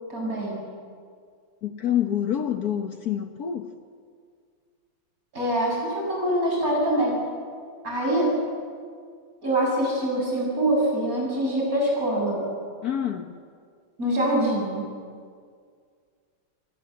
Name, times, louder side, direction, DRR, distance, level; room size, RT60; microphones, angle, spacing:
voice 1, 0.1-0.6 5.3-7.2 7.8-8.3 9.4-12.4 14.0-14.9, right 1 dB, 45° right, -2 dB, 8.1 m, -24 dB
voice 2, 1.6-3.7 12.8-13.3, left 10 dB, 55° left, 7 dB, 1.5 m, -27 dB
28.0 x 19.0 x 7.9 m, 2.1 s
omnidirectional pair, 2.1 m